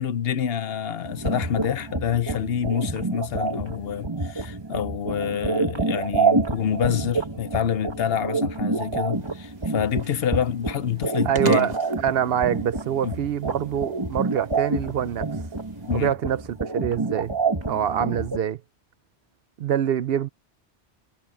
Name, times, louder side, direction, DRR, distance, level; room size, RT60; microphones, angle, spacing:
voice 1, 0.0-11.7 13.0-13.2 15.9-16.1, left 8 dB, 65° left, 0.9 m, -27 dB
sound 1, 1.0-18.4, right 3 dB, 25° right, 1.7 m, -28 dB
sound 2, 9.1-16.1, right 4 dB, 40° right, 1.6 m, -43 dB
voice 2, 11.3-15.3 15.9-17.3 17.7-18.6 19.6-20.3, right 9 dB, 65° right, 0.8 m, -25 dB
omnidirectional pair, 1.1 m